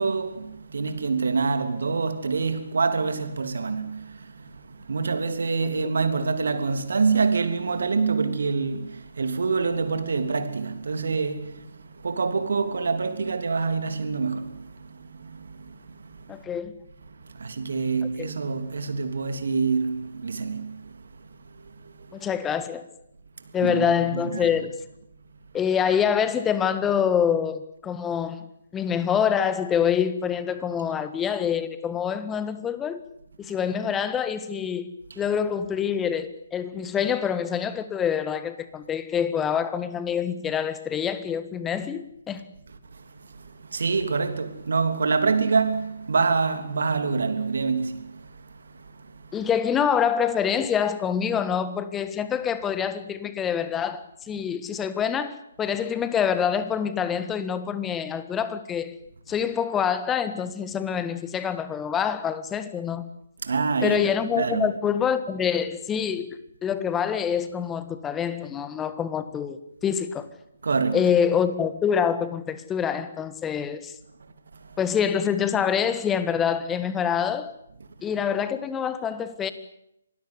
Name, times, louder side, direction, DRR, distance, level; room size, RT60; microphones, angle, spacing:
voice 1, 0.0-16.4 17.1-22.3 23.6-24.5 35.1-35.2 42.9-49.4 63.4-64.1 64.4-64.7 70.6-71.1 74.5-74.8, right 4 dB, 60° right, 3.2 m, -27 dB
voice 2, 16.3-16.7 18.2-18.3 22.1-22.8 23.5-24.7 25.5-28.4 28.7-33.0 33.4-34.9 35.2-42.4 49.3-58.9 59.3-63.1 63.8-66.3 66.6-70.3 70.9-73.9 74.8-77.5 78.0-79.5, left 8 dB, 10° left, 1.7 m, -26 dB
25.5 x 19.5 x 8.3 m
figure-of-eight pair, 140°, 0 cm